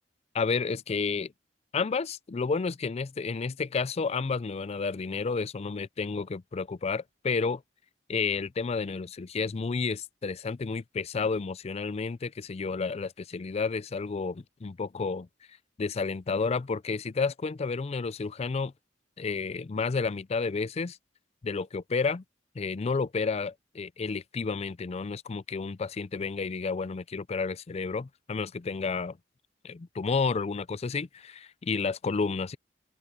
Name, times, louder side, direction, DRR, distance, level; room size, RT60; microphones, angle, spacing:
voice 1, 0.3-1.3 1.7-7.6 8.1-15.3 15.8-18.7 19.2-21.0 21.4-22.2 22.6-29.2 29.6-32.6, left 4 dB, 35° left, 0.4 m, -31 dB
open air
head